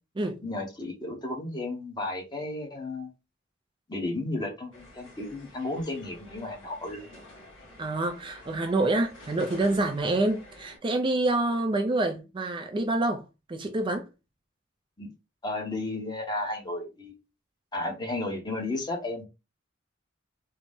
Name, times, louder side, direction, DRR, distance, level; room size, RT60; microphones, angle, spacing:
voice 1, 0.4-3.1 3.9-7.2 15.0-15.1 15.4-17.1 17.7-19.2, left 2 dB, 20° left, 0.9 m, -33 dB
sound 1, 4.7-10.8, left 1 dB, 75° left, 2.1 m, -49 dB
voice 2, 7.8-13.2 13.5-14.1, right 2 dB, 25° right, 0.4 m, -27 dB
3.9 x 2.1 x 3.5 m
head